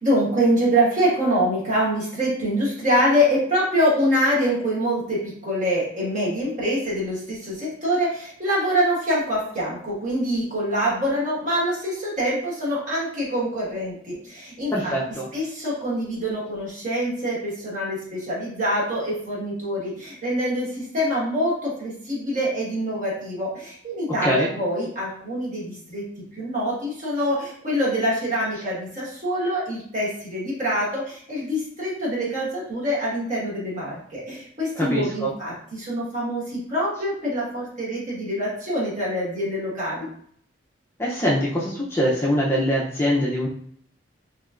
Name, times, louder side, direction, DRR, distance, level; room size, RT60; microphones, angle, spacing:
voice 1, 0.0-14.9 15.3-40.1, equal, 40° right, -7 dB, 1.3 m, -25 dB
voice 2, 14.7-15.3 24.2-24.5 34.8-35.3 41.0-43.5, equal, 10° left, -5 dB, 0.4 m, -23 dB
3.2 x 3.0 x 2.4 m, 0.64 s
head